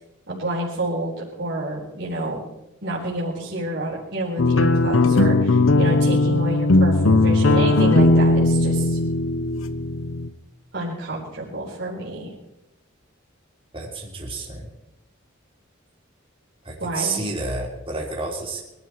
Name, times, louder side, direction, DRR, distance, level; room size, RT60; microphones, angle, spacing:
voice 1, 0.3-1.1 1.4-2.4 2.8-9.0 10.7-12.3 16.8-17.2, right 1 dB, 60° right, -5 dB, 4.1 m, -28 dB
sound 1, 4.4-10.3, left 2 dB, 90° left, 0.9 m, -18 dB
voice 2, 13.7-14.7 16.6-18.6, right 3 dB, 25° right, -1 dB, 3.4 m, -30 dB
23.0 x 12.5 x 4.6 m, 0.93 s
head